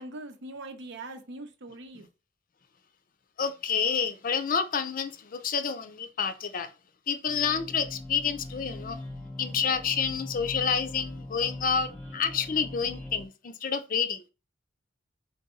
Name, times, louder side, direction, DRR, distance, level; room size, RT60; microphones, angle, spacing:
voice 1, 0.0-2.1, right 2 dB, 65° right, 0.8 m, -41 dB
voice 2, 3.4-6.7 7.1-9.0 9.4-14.2, left 6 dB, 45° left, 0.5 m, -29 dB
sound 1, 7.3-13.3, left 1 dB, 10° left, 0.8 m, -41 dB
4.0 x 3.6 x 3.7 m
head